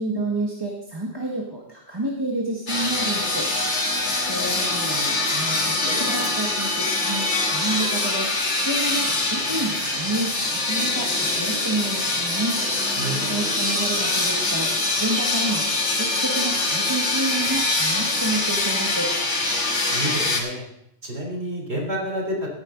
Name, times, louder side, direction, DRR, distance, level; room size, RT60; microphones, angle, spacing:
voice 1, 0.0-3.5 4.2-12.6 13.2-19.1, right 2 dB, 20° right, -2 dB, 1.5 m, -29 dB
sound 1, 2.7-20.4, left 2 dB, 80° left, 2.2 m, -24 dB
voice 2, 13.0-13.5 19.9-20.6 21.0-22.6, right 1 dB, 70° right, 0 dB, 3.8 m, -29 dB
15.5 x 10.5 x 3.8 m, 0.77 s
omnidirectional pair, 1.2 m